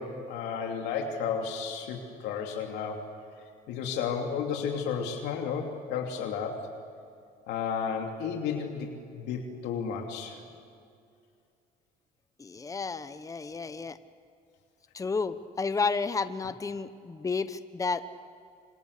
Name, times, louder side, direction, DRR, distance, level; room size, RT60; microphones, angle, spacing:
voice 1, 0.0-3.1 3.7-6.6 7.5-8.9 9.1-10.4, left 6 dB, 90° left, 2 dB, 2.9 m, -32 dB
voice 2, 12.4-14.0 14.9-18.0, left 4 dB, 20° left, 12 dB, 1.0 m, -31 dB
27.5 x 26.0 x 6.7 m, 2.4 s
cardioid pair, 110°, 17 cm